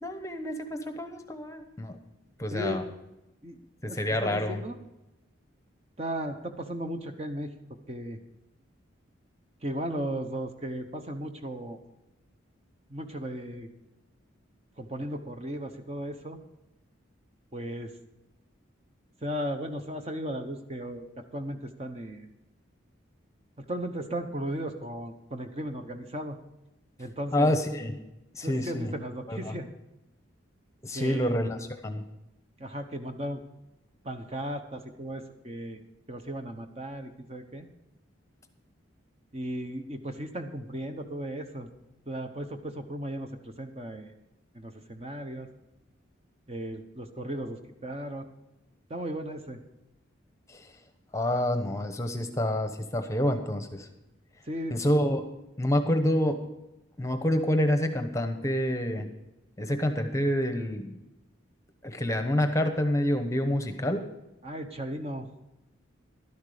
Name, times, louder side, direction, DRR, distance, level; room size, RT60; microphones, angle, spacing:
voice 1, 0.0-2.0 2.4-2.8 3.8-4.6 27.3-28.0 28.3-28.9 29.3-29.5 30.8-31.6 31.8-32.0 50.5-50.7 51.1-53.9 54.7-55.2 55.6-56.4 57.0-59.1 59.6-61.0 61.8-64.0, left 1 dB, 15° left, 7 dB, 0.9 m, -27 dB
voice 2, 2.5-2.9 3.4-3.6 3.9-4.8 6.0-7.5 7.9-8.2 9.6-11.8 12.9-13.7 14.8-16.4 17.5-17.9 19.2-22.3 23.6-26.4 27.0-27.5 28.4-29.7 30.9-31.3 32.6-33.4 34.0-35.8 36.1-37.7 39.3-41.7 42.1-44.1 44.5-45.5 46.5-48.3 48.9-49.6 54.4-54.8 64.4-65.3, right 1 dB, 30° right, 6 dB, 0.9 m, -36 dB
12.0 x 11.0 x 5.0 m, 0.92 s
head